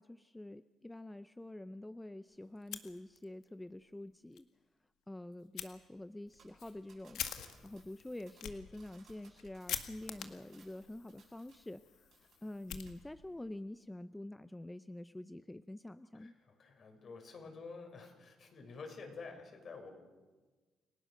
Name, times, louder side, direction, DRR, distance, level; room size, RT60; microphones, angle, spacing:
voice 1, 0.0-4.5 5.1-7.2 7.6-12.1 12.4-16.3, left 1 dB, 10° left, 12 dB, 0.6 m, -47 dB
Fire, 2.6-3.5 3.8-3.9 4.3-4.4 5.6-5.7 6.3-13.4, left 10 dB, 80° left, 1.8 m, -46 dB
sound 1, 6.4-11.8 12.1-12.6 12.9-13.0, right 6 dB, 65° right, 7.3 m, -66 dB
voice 2, 16.1-19.9, left 4 dB, 55° left, 4 dB, 6.3 m, -49 dB
29.0 x 18.0 x 6.6 m, 1.3 s
cardioid pair, 90°, 0 cm